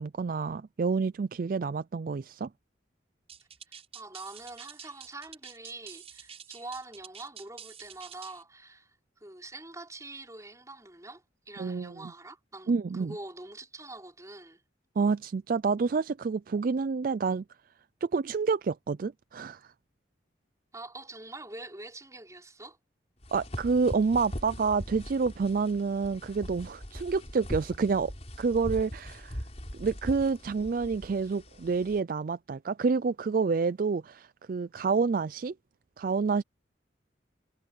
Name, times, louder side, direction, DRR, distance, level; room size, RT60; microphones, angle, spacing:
voice 1, 0.0-2.5 11.6-12.1 12.7-13.2 15.0-17.4 18.0-19.7 23.3-28.1 28.4-29.5 29.8-35.5 36.0-36.4, right 4 dB, 50° right, 0.4 m, -28 dB
sound 1, 3.3-8.4, right 8 dB, 35° right, 7.0 m, -48 dB
voice 2, 3.7-14.6 20.7-22.8, right 2 dB, 15° right, 5.5 m, -45 dB
sound 2, 23.2-32.0, equal, 35° left, 5.0 m, -41 dB
head